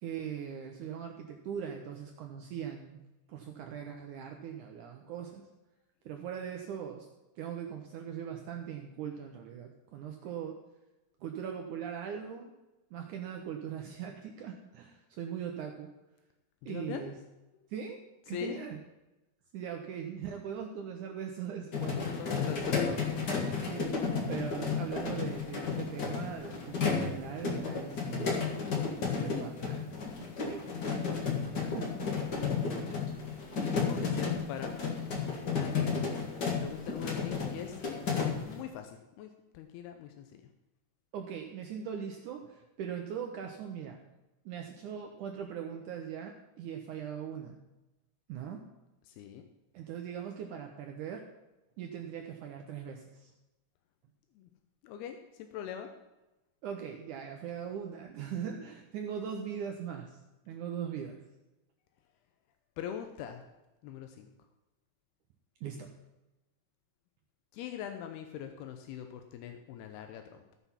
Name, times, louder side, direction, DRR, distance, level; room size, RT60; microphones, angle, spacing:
voice 1, 0.0-3.0 3.3-5.5 6.1-7.1 7.4-10.6 11.2-12.5 12.9-15.9 16.7-17.2 17.7-18.0 18.3-18.8 19.5-22.3 23.5-23.9 24.3-28.5 29.2-29.9 30.2-32.0 41.1-44.0 44.5-47.6 48.3-48.6 49.7-51.2 51.8-53.3 56.6-60.2 60.5-61.2 65.6-65.9, right 8 dB, 75° right, 3 dB, 1.9 m, -40 dB
voice 2, 16.6-17.1 18.2-18.6 21.8-23.0 32.9-33.3 33.7-34.7 35.4-35.8 36.6-37.8 38.3-40.4 49.0-49.5 54.4-54.5 54.8-55.9 62.8-63.4 63.8-64.3 67.5-70.6, left 9 dB, 85° left, 6 dB, 2.7 m, -42 dB
sound 1, 21.7-38.6, left 5 dB, 50° left, 1.2 m, -33 dB
15.5 x 5.7 x 5.7 m, 1.0 s
omnidirectional pair, 4.5 m